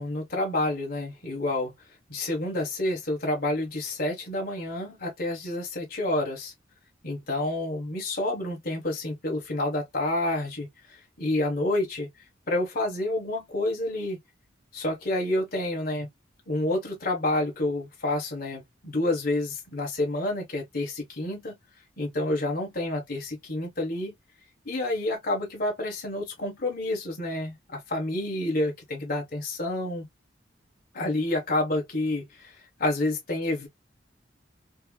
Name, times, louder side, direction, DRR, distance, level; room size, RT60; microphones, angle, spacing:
voice 1, 0.0-1.7 2.1-6.5 7.0-12.1 12.5-14.2 14.7-16.1 16.5-21.6 22.0-24.1 24.6-30.0 30.9-33.7, left 1 dB, 50° left, 1.4 m, -29 dB
4.5 x 2.1 x 2.3 m
head